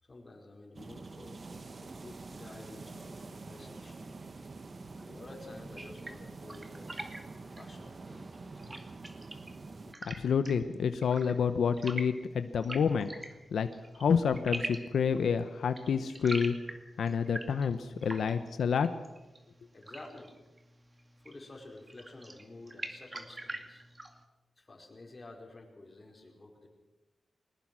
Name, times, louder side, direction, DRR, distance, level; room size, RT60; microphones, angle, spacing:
voice 1, 0.0-4.2 5.0-7.0 7.5-8.3 8.5-8.9 18.0-18.1 19.7-20.3 21.2-23.8 24.6-26.7, left 2 dB, 30° left, 1 dB, 4.8 m, -51 dB
sound 1, 0.7-9.9, right 3 dB, 40° right, 1.3 m, -46 dB
sound 2, 5.8-24.2, right 2 dB, 25° right, 2.2 m, -46 dB
voice 2, 10.1-13.1 13.5-13.7 14.0-16.6 17.0-18.9, left 6 dB, 90° left, 9 dB, 0.9 m, -28 dB
21.0 x 20.0 x 6.2 m, 1.1 s
wide cardioid pair, 100°, 0 cm